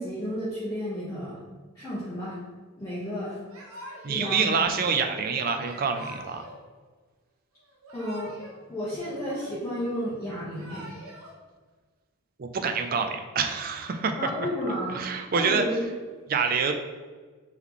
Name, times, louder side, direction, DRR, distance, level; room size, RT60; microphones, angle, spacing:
voice 1, 0.0-1.4 1.7-2.4 2.8-3.4 4.1-4.6 7.9-8.3 8.7-10.9 14.2-15.0 15.3-15.9, equal, 15° left, -11 dB, 0.9 m, -32 dB
Yell / Crying sobbing, 3.5-4.3 5.6-6.6 7.7-8.6 8.9-9.8 10.4-11.3, right 1 dB, 75° right, 1.0 m, -45 dB
voice 2, 4.0-6.4 12.4-14.3 14.9-15.6 16.3-16.7, right 5 dB, 40° right, 6 dB, 0.3 m, -26 dB
3.6 x 3.1 x 3.6 m, 1.4 s
head